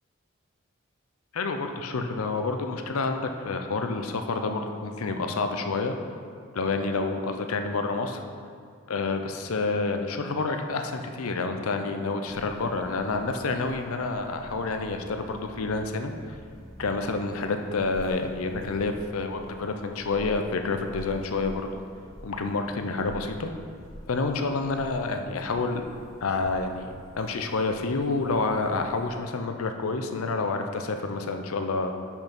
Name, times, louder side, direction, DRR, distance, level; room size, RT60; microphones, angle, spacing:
voice 1, 1.3-5.9 6.5-8.2 8.9-16.1 16.8-21.7 22.2-23.5 24.1-25.8 26.2-31.9, left 3 dB, 90° left, 6 dB, 0.6 m, -28 dB
sound 1, 12.2-29.2, equal, 15° left, 1.1 m, -47 dB
5.4 x 4.6 x 5.9 m, 2.1 s
head